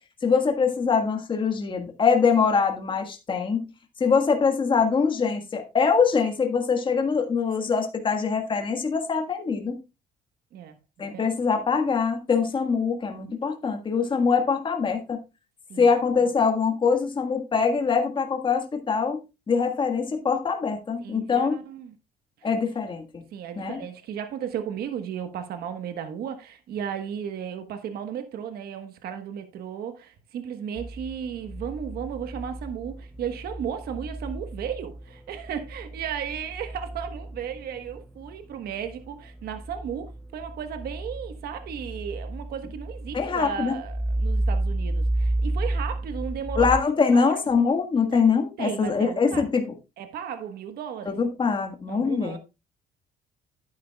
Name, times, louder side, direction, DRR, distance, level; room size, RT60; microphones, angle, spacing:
voice 1, 0.2-3.7 4.0-9.8 11.0-15.2 15.8-21.6 22.4-23.2 23.6-23.8 43.1-43.7 46.6-49.6 51.0-52.4, left 5 dB, 30° left, 1.7 m, -23 dB
voice 2, 10.5-11.3 15.7-15.9 21.0-21.9 23.3-46.7 47.1-47.4 48.1-48.2 48.6-49.4 50.0-51.2 51.9-52.4, right 8 dB, 65° right, 1.3 m, -35 dB
sound 1, 30.8-46.8, right 1 dB, ahead, 0.5 m, -32 dB
11.0 x 9.3 x 2.3 m
cardioid pair, 110°, 17 cm